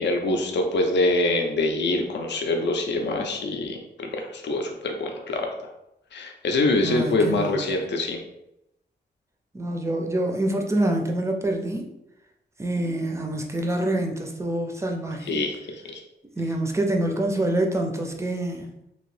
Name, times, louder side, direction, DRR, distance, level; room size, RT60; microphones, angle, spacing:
voice 1, 0.0-5.5 6.1-8.2 15.3-16.0, left 2 dB, 80° left, 3 dB, 0.5 m, -25 dB
voice 2, 6.8-7.6 9.5-11.9 12.6-15.4 16.4-18.7, right 1 dB, 15° right, 3 dB, 0.4 m, -26 dB
2.9 x 2.6 x 3.1 m, 0.86 s
wide cardioid pair, 140°, 18 cm